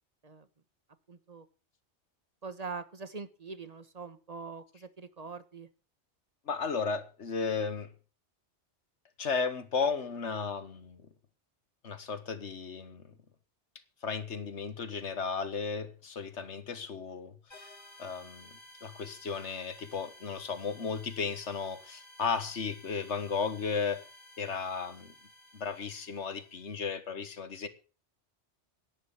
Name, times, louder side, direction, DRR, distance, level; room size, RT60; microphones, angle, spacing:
voice 1, 1.1-1.5 2.4-5.7, right 4 dB, 35° right, 1.4 m, -43 dB
voice 2, 6.4-7.9 9.2-11.0 11.8-13.1 14.0-17.7 18.0-24.0 24.4-25.1 25.5-27.7, left 5 dB, 75° left, 1.7 m, -35 dB
sound 1, 17.5-26.9, left 1 dB, 40° left, 3.0 m, -55 dB
11.0 x 9.7 x 7.1 m
omnidirectional pair, 1.2 m